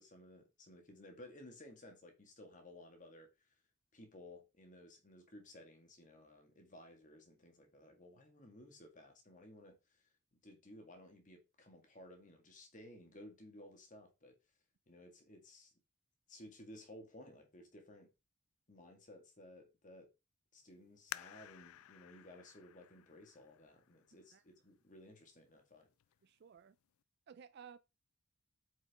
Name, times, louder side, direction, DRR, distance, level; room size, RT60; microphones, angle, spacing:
voice 1, 0.0-3.3 3.9-9.8 10.4-14.4 14.9-15.7 16.3-18.1 18.7-20.1 20.5-25.9, left 1 dB, 35° left, 1.9 m, -57 dB
sound 1, 21.1-24.5 25.1-25.2 25.8-26.2 26.6-26.7, left 13 dB, 70° left, 0.3 m, -52 dB
voice 2, 26.2-26.8 27.3-27.8, right 7 dB, 50° right, 0.4 m, -56 dB
8.2 x 5.2 x 3.6 m
head